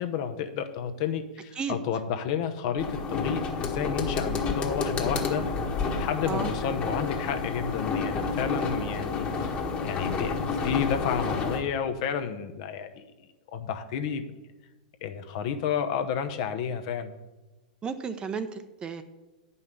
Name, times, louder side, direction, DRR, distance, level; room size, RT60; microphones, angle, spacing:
voice 1, 0.0-5.5 5.9-9.5 9.8-13.0 13.5-14.2 15.0-17.1, left 8 dB, 50° left, 8 dB, 0.9 m, -31 dB
sound 1, 2.8-11.6, left 4 dB, 25° left, 1.5 m, -30 dB
voice 2, 17.8-19.0, right 6 dB, 20° right, 10 dB, 0.7 m, -33 dB
9.5 x 5.6 x 6.8 m, 1.1 s
hypercardioid pair, 110°, 4 cm